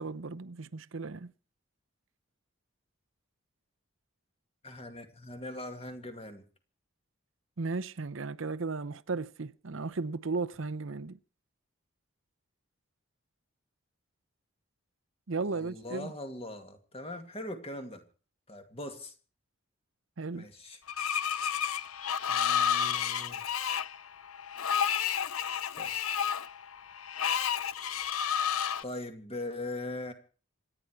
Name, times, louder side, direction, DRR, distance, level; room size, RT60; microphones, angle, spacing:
voice 1, 0.0-1.3 7.6-11.2 15.3-16.1 20.2-20.5, right 3 dB, 65° right, 0.7 m, -35 dB
voice 2, 4.6-6.4 15.4-18.0 18.5-19.1 20.3-20.8 22.3-23.4 25.7-25.9 28.8-30.1, left 1 dB, 25° left, 2.3 m, -41 dB
Screech, 20.9-28.8, left 8 dB, 85° left, 0.7 m, -31 dB
26.5 x 10.0 x 4.6 m
head